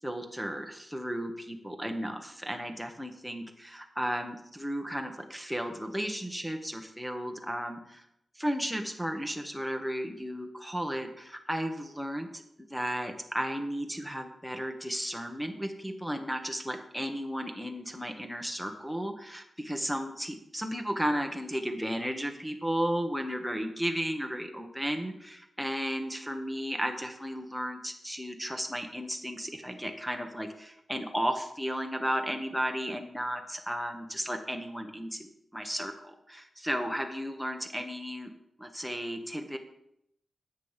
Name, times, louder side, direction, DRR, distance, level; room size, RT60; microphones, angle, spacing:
voice 1, 0.0-8.1 8.4-38.3 38.6-39.6, equal, ahead, 5 dB, 1.1 m, -34 dB
10.0 x 8.0 x 5.7 m, 0.76 s
wide cardioid pair, 150°, 0 cm